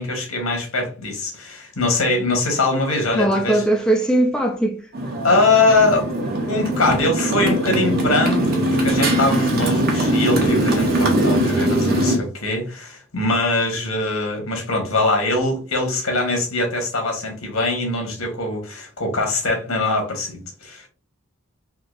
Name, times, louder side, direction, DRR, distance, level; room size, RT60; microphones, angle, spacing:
voice 1, 0.0-3.6 5.2-6.1 6.5-20.9, left 2 dB, 85° left, 1.4 m, -22 dB
voice 2, 3.1-4.8, right 1 dB, 5° left, 0.3 m, -19 dB
Motorcycle, 4.9-12.2, right 1 dB, 45° right, 0.9 m, -21 dB
3.7 x 2.8 x 2.5 m
head